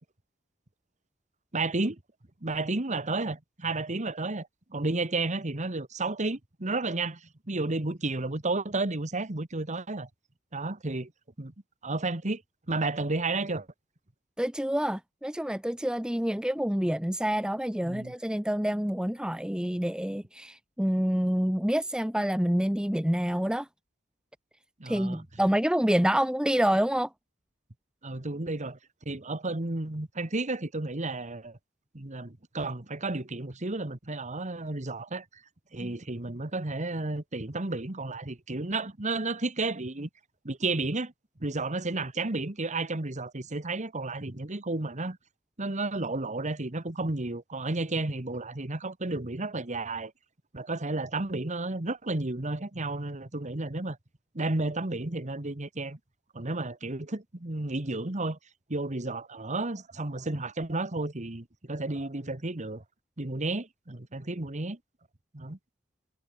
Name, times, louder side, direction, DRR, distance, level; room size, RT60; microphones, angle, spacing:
voice 1, 1.5-2.0 2.4-10.1 10.5-11.1 11.4-11.5 11.8-12.4 12.7-13.7 17.8-18.1 24.8-25.2 28.0-28.8 29.0-31.6 31.9-35.2 35.7-40.1 40.4-41.1 41.4-45.2 45.6-50.1 50.5-54.0 54.3-56.0 56.3-58.4 58.7-62.8 63.2-64.8 65.3-65.6, right 2 dB, 35° right, 1.5 m, -32 dB
voice 2, 14.4-23.7 24.8-27.1 35.8-35.9, equal, 5° right, 0.8 m, -27 dB
head